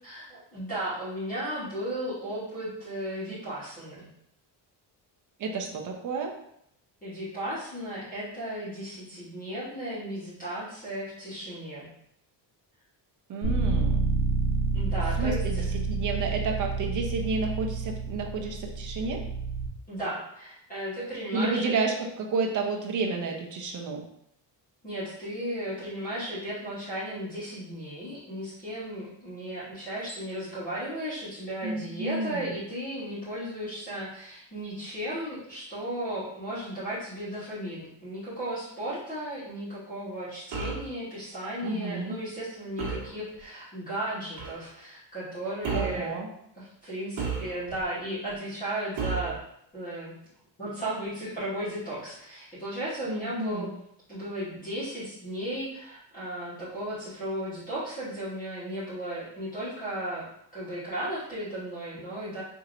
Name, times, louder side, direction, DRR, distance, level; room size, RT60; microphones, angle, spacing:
voice 1, 0.0-4.1 7.0-11.9 14.7-15.6 19.9-21.7 24.8-46.2 46.5-49.4 49.7-50.2 50.6-53.7 54.1-60.3 60.5-62.4, right 1 dB, 20° left, -11 dB, 1.2 m, -35 dB
voice 2, 5.4-6.3 13.3-14.0 15.2-19.2 21.3-24.0 31.6-32.5 41.6-42.2 45.7-46.3 53.0-53.7, right 3 dB, 45° right, 1 dB, 0.6 m, -31 dB
Bass guitar, 13.4-19.7, right 4 dB, 55° left, 1.1 m, -29 dB
sound 1, 40.5-40.9 42.8-43.1 44.4-44.6 45.6-46.0 47.2-47.8 49.0-49.4, right 5 dB, 65° right, 1.2 m, -32 dB
4.6 x 2.8 x 2.6 m, 0.73 s
cardioid pair, 175°, 44 cm